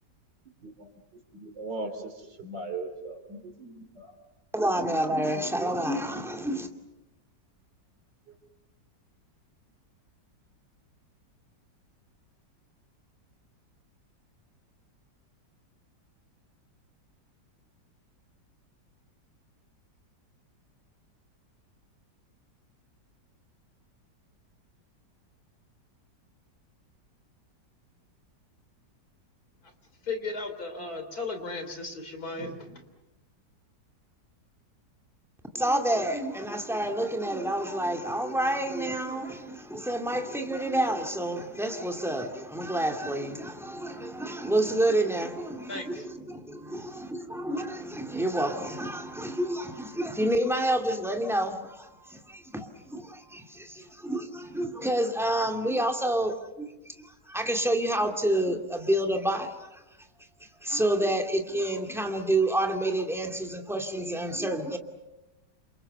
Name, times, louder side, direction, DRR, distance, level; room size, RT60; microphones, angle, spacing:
voice 1, 0.6-4.2 4.6-5.4 5.7-5.8 8.3-8.4, right 2 dB, 80° right, 4.2 m, -40 dB
voice 2, 4.5-6.7 35.5-59.8 60.4-64.8, right 1 dB, ahead, 2.4 m, -29 dB
voice 3, 30.0-32.8 45.7-46.0, left 3 dB, 55° left, 3.9 m, -36 dB
29.5 x 27.0 x 6.8 m
omnidirectional pair, 1.9 m